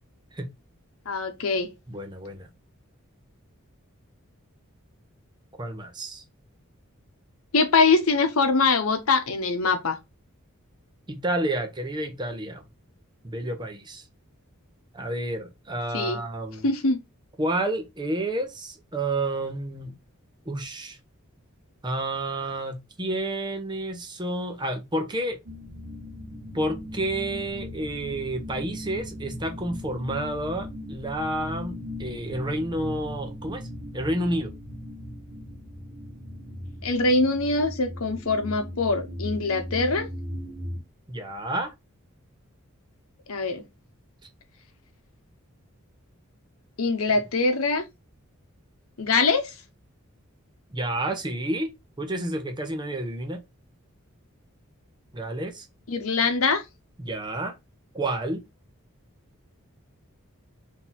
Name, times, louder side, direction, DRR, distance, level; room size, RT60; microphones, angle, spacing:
voice 1, 1.1-1.7 7.5-10.0 15.9-16.2 16.6-17.0 36.8-40.1 43.3-43.6 46.8-47.8 49.0-49.5 55.9-56.6, left 3 dB, 80° left, 0.9 m, -23 dB
voice 2, 1.9-2.5 5.6-6.2 11.1-12.6 13.2-14.0 14.9-16.7 17.4-20.0 20.5-21.0 21.8-25.4 26.5-33.7 33.9-34.5 41.1-41.7 50.7-51.7 52.0-53.4 55.1-55.7 57.0-57.5 57.9-58.4, right 1 dB, 20° right, 0.7 m, -30 dB
sound 1, 25.5-40.8, left 1 dB, 45° right, 1.2 m, -38 dB
3.9 x 2.8 x 4.1 m
head